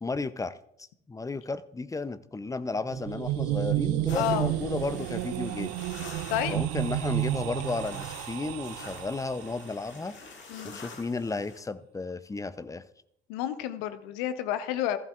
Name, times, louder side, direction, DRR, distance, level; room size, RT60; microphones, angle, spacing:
voice 1, 0.0-0.6 1.1-5.7 6.5-10.2 10.6-12.8, left 3 dB, 10° left, 14 dB, 0.5 m, -33 dB
sound 1, 2.8-9.8, right 16 dB, 50° right, 0.5 m, -31 dB
voice 2, 4.1-4.5 6.3-6.6 10.5-10.8 13.3-15.0, left 11 dB, 60° left, 12 dB, 0.8 m, -30 dB
sound 2, 4.1-11.6, left 4 dB, 35° left, 2.0 m, -47 dB
14.5 x 11.5 x 2.5 m, 0.71 s
figure-of-eight pair, 55°, 32 cm